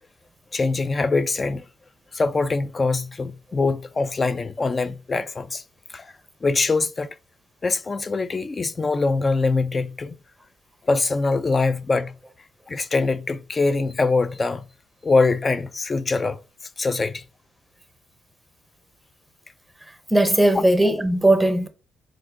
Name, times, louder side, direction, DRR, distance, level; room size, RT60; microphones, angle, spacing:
voice 1, 0.5-1.6 2.1-5.6 5.9-6.1 6.4-7.1 7.6-10.2 10.9-12.1 12.7-14.7 15.0-16.4 16.8-17.2, left 3 dB, 30° left, 0.4 m, -23 dB
voice 2, 20.1-21.7, right 1 dB, ahead, 0.7 m, -18 dB
4.5 x 2.5 x 3.7 m
cardioid pair, 90°, 0 cm